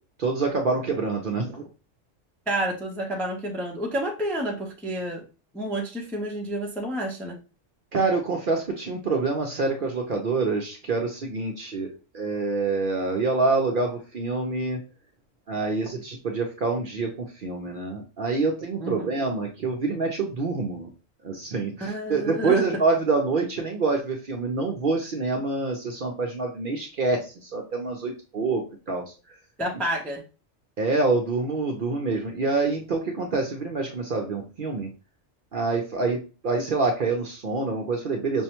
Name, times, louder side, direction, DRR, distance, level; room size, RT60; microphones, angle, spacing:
voice 1, 0.2-1.6 7.9-11.9 12.1-14.8 15.5-17.1 17.4-20.9 21.2-28.6 28.9-29.0 30.8-34.9 35.5-36.2 36.4-38.4, right 3 dB, 55° right, 1 dB, 0.6 m, -26 dB
voice 2, 2.5-5.2 5.5-7.4 18.8-19.1 21.8-22.7 29.6-30.2, right 1 dB, ahead, 0 dB, 0.4 m, -29 dB
5.4 x 2.1 x 2.9 m, 0.33 s
omnidirectional pair, 1.3 m